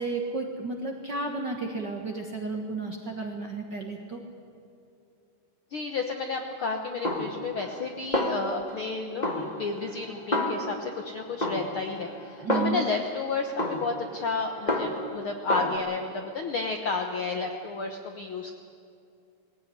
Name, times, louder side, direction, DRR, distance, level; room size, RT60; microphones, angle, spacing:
voice 1, 0.0-4.2 12.4-12.9, right 3 dB, 50° right, 2 dB, 1.3 m, -32 dB
voice 2, 5.7-18.6, left 4 dB, 65° left, 4 dB, 1.3 m, -32 dB
Snare drum, 7.0-7.9 8.1-8.9 9.2-11.0 11.4-13.1 13.6-15.2 15.5-15.8, left 1 dB, 25° left, 1.0 m, -30 dB
19.5 x 17.0 x 9.9 m, 2.6 s
omnidirectional pair, 3.9 m